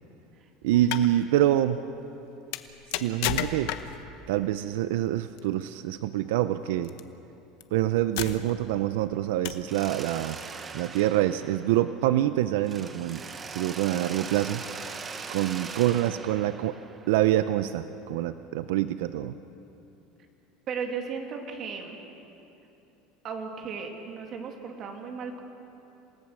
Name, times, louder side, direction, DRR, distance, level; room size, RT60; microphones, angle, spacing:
voice 1, 0.6-1.8 2.9-3.7 4.3-6.9 7.7-10.4 10.7-13.2 13.5-14.6 15.3-16.8 17.1-19.3, right 13 dB, 85° right, 12 dB, 0.6 m, -26 dB
sound 1, 0.7-1.1 2.5-4.1 5.4-5.6 6.8-7.0 7.6-7.7 8.2-8.7 9.5-9.7, left 13 dB, 65° left, 1.0 m, -32 dB
Mechanisms, 9.7-12.3 12.6-17.5, right 5 dB, 20° right, 0.9 m, -41 dB
voice 2, 20.7-22.0 23.2-25.4, right 5 dB, 35° right, 3 dB, 2.5 m, -35 dB
28.5 x 18.0 x 6.4 m, 3.0 s
cardioid pair, 160°, 0 cm